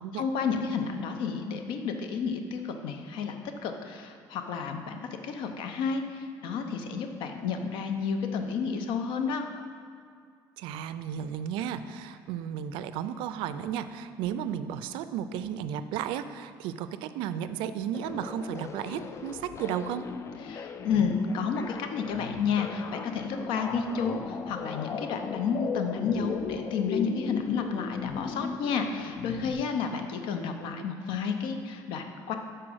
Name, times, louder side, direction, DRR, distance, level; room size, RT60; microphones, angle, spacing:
voice 1, 0.1-3.4 3.6-9.5 20.4-32.3, left 5 dB, 75° left, 6 dB, 0.7 m, -31 dB
voice 2, 10.6-20.1, right 9 dB, 85° right, 12 dB, 0.4 m, -34 dB
sound 1, 17.9-29.5, left 6 dB, 35° left, 0.3 m, -38 dB
6.0 x 4.6 x 6.2 m, 2.2 s
cardioid pair, 120°, 8 cm